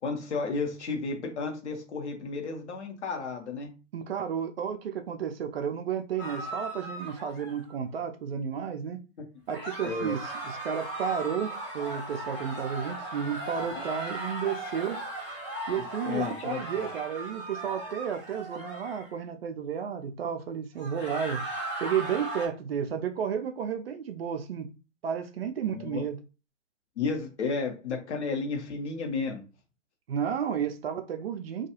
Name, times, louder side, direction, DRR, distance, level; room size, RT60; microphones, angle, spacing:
voice 1, 0.0-3.7 9.8-10.2 13.7-13.9 16.0-16.9 25.6-26.0 27.0-29.4, left 4 dB, 60° left, 0.8 m, -32 dB
voice 2, 3.9-9.0 9.5-15.0 15.7-21.4 21.8-24.7 25.0-26.2 30.1-31.7, right 8 dB, 50° right, 0.4 m, -32 dB
sound 1, 6.2-7.7 9.5-19.1 20.8-22.5, right 2 dB, 10° left, 0.5 m, -37 dB
2.3 x 2.2 x 2.9 m
figure-of-eight pair, 115°, 38 cm